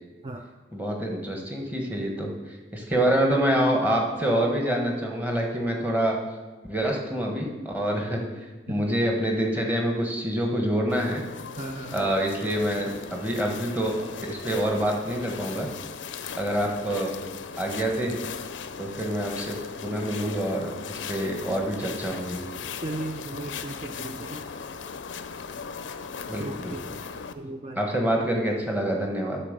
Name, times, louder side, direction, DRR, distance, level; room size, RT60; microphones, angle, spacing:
voice 1, 0.7-6.2 6.6-8.2 8.7-11.2 11.9-14.0 14.3-15.7 16.4-17.1 17.6-18.2 18.8-22.4 26.3-26.7 27.7-29.4, right 1 dB, 10° right, 0 dB, 1.3 m, -26 dB
sound 1, 10.9-27.3, left 6 dB, 85° left, 0.5 m, -38 dB
voice 2, 11.6-12.1 22.8-24.5 26.4-26.8 27.4-27.9, right 2 dB, 30° right, 3 dB, 0.4 m, -36 dB
11.0 x 4.1 x 6.6 m, 1.2 s
head